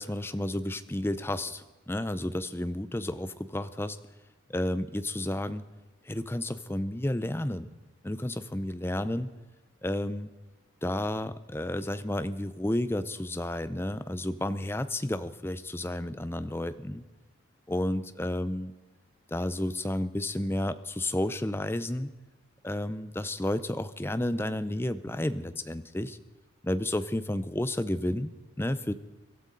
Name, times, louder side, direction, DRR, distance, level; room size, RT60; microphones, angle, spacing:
voice 1, 0.0-4.0 4.5-5.6 6.0-7.7 8.0-9.3 9.8-10.3 10.8-17.0 17.7-18.7 19.3-22.1 22.6-26.2 26.6-28.3 28.6-28.9, left 1 dB, 10° left, 13 dB, 0.6 m, -31 dB
23.0 x 13.0 x 3.9 m, 1.2 s
head